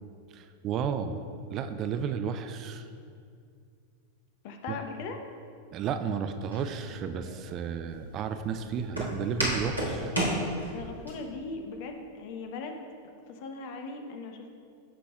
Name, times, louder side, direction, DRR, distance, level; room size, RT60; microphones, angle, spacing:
voice 1, 0.3-1.2 1.5-2.8 4.7-4.8 5.7-10.1, right 7 dB, 35° right, 9 dB, 0.4 m, -32 dB
voice 2, 4.4-5.2 10.7-12.8 13.3-14.5, left 4 dB, 50° left, 5 dB, 0.9 m, -39 dB
Walk footsteps, 6.5-11.1, equal, 85° right, 1.9 m, -33 dB
15.0 x 5.9 x 2.4 m, 2.3 s
figure-of-eight pair, 90°, 0 cm